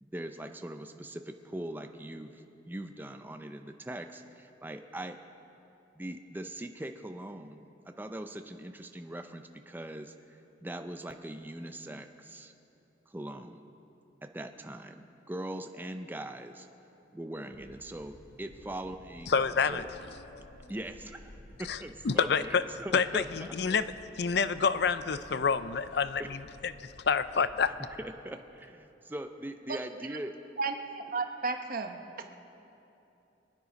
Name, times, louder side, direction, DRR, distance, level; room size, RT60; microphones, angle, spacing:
voice 1, 0.0-5.2 5.9-12.5 13.1-13.7 14.2-16.7 17.1-19.4 19.7-19.9 20.7-23.8 26.2-26.3 28.0-30.3, right 1 dB, 10° right, 6 dB, 0.5 m, -41 dB
sound 1, 17.5-28.1, left 1 dB, 80° left, 1.1 m, -54 dB
voice 2, 19.3-19.8 21.7-21.8 22.0-22.6 22.9-27.7, left 5 dB, 65° left, 13 dB, 0.5 m, -28 dB
voice 3, 30.6-32.3, right 4 dB, 50° right, 5 dB, 1.0 m, -34 dB
24.5 x 9.7 x 5.2 m, 2.9 s
head